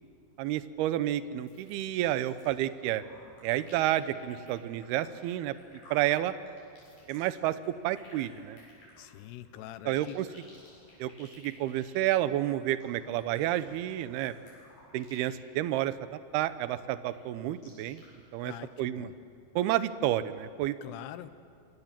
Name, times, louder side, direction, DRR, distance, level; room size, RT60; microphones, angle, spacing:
voice 1, 0.4-3.0 3.4-5.5 5.9-6.3 7.1-7.5 7.8-8.6 9.9-10.3 11.0-14.3 14.9-15.9 16.3-18.0 18.3-18.5 18.8-19.1 19.6-20.8, right 13 dB, 80° right, 13 dB, 2.7 m, -30 dB
sound 1, 1.4-2.5 2.8-15.4 15.7-16.0 16.4-18.0 18.5-18.6, left 1 dB, 50° left, 9.3 m, -56 dB
voice 2, 9.0-10.2 18.4-19.1 20.8-21.3, left 13 dB, 85° left, 12 dB, 3.0 m, -44 dB
27.0 x 24.5 x 7.5 m, 2.4 s
omnidirectional pair, 4.8 m